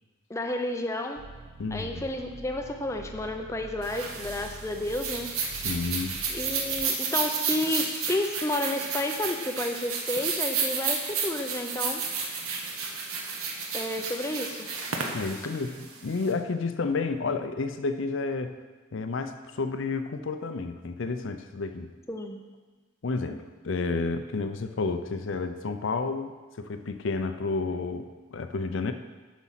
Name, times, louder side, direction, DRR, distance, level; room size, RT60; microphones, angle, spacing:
voice 1, 0.3-1.2 1.7-5.3 6.3-12.0 13.7-14.7 22.1-22.4, left 1 dB, 15° left, 4 dB, 0.5 m, -31 dB
sound 1, 1.2-6.9, right 3 dB, 55° right, 0.4 m, -46 dB
voice 2, 1.6-2.0 5.6-6.2 15.1-18.6 18.9-21.9 23.0-28.9, left 4 dB, 65° left, 8 dB, 0.5 m, -31 dB
sound 2, 3.8-16.3, right 5 dB, 90° right, 1.2 m, -32 dB
8.0 x 6.1 x 5.7 m, 1.3 s
head